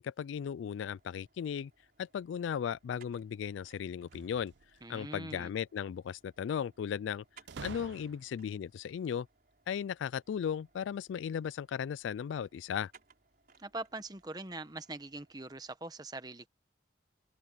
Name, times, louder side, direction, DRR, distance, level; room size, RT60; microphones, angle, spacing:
voice 1, 0.0-1.7 2.0-4.5 4.9-7.2 7.6-9.3 9.7-12.9, left 8 dB, 85° left, 0.3 m, -36 dB
sound 1, 1.0-15.8, right 5 dB, 50° right, 4.8 m, -66 dB
sound 2, 4.0-5.0 7.5-8.5, right 4 dB, 70° right, 0.6 m, -48 dB
voice 2, 4.8-5.5 13.6-16.5, right 2 dB, 20° right, 1.1 m, -42 dB
open air
head